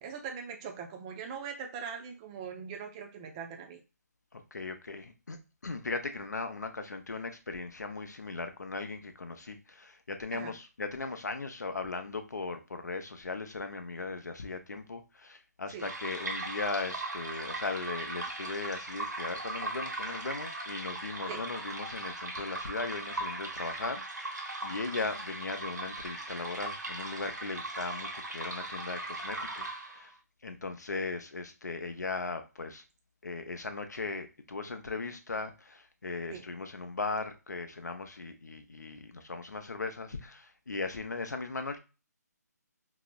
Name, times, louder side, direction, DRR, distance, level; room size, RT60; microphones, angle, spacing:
voice 1, 0.0-3.8 10.3-10.5 15.7-15.8 21.3-21.4 36.3-36.4, right 6 dB, 20° right, 4 dB, 0.4 m, -41 dB
voice 2, 4.3-5.4 5.6-30.1 30.4-32.8 33.2-41.8, left 3 dB, 75° left, 7 dB, 0.6 m, -38 dB
sound 1, 15.8-30.1, right 2 dB, 85° right, 0.7 m, -39 dB
4.7 x 2.0 x 2.2 m, 0.30 s
figure-of-eight pair, 145°, 9 cm